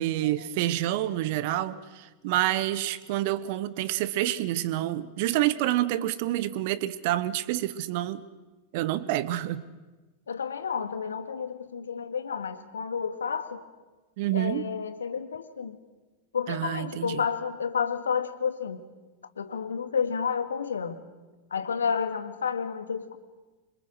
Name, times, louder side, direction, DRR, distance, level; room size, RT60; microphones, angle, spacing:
voice 1, 0.0-8.2 8.7-9.7 14.2-14.6 16.5-17.2, right 14 dB, 50° right, 17 dB, 1.2 m, -28 dB
voice 2, 10.3-13.6 14.3-15.8 16.3-18.8 19.4-21.0 21.5-23.2, left 6 dB, 70° left, 9 dB, 2.1 m, -30 dB
26.5 x 26.0 x 6.4 m, 1.2 s
figure-of-eight pair, 90°, 0 cm